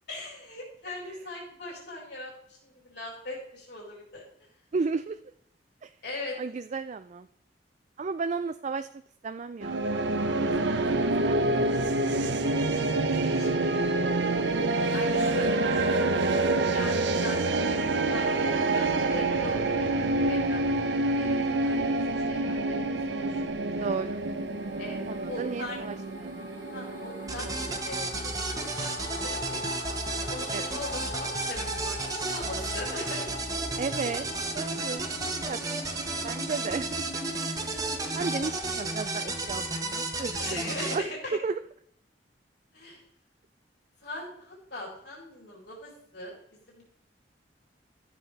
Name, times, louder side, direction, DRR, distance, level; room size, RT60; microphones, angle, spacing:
voice 1, 0.1-4.2 6.0-6.4 12.9-14.1 14.9-16.0 16.6-17.7 18.1-19.9 20.2-21.8 22.2-22.8 23.1-23.9 24.8-25.0 25.2-25.8 26.7-29.0 29.2-29.7 30.2-33.3 40.4-41.4 42.7-43.0 44.0-46.4 46.7-46.8, left 2 dB, 70° left, -3 dB, 4.3 m, -40 dB
voice 2, 4.7-5.2 5.8-5.9 6.4-7.3 8.0-8.9 9.2-11.5 16.7-17.0 23.8-24.2 25.1-26.5 30.5-30.7 33.8-34.3 34.5-35.1 35.5-35.6 35.9-37.0 38.1-41.0 41.3-41.6, right 4 dB, 40° right, 10 dB, 0.4 m, -34 dB
sound 1, 9.6-27.8, right 2 dB, 80° right, 0.8 m, -27 dB
sound 2, 23.3-38.5, left 1 dB, 45° left, 2.1 m, -42 dB
sound 3, 27.3-41.0, right 2 dB, 20° right, 1.2 m, -33 dB
13.5 x 7.6 x 3.4 m, 0.67 s
head